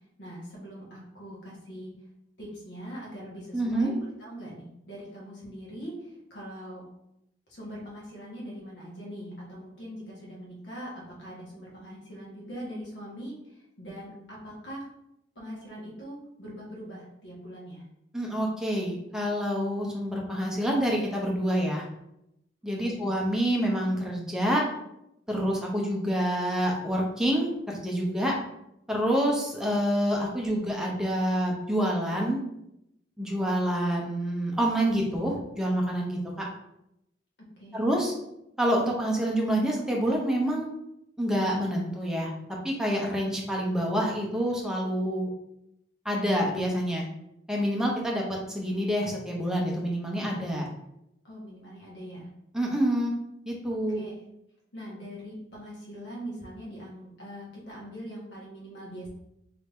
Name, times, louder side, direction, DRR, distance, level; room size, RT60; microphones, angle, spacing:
voice 1, 0.2-1.9 2.4-3.9 4.2-6.8 7.5-14.9 15.3-17.8 22.8-23.1 37.6-37.9 51.2-52.3 53.9-54.2 54.7-59.1, equal, 65° left, -4 dB, 1.3 m, -42 dB
voice 2, 3.5-3.9 18.1-21.8 22.6-24.6 25.3-28.3 28.9-32.4 33.2-36.5 37.7-38.1 38.6-40.7 41.2-42.3 42.6-45.3 46.0-47.0 47.5-50.7 52.5-53.1 53.5-54.0, equal, 5° right, -2 dB, 0.6 m, -27 dB
3.2 x 2.7 x 3.4 m, 0.82 s
head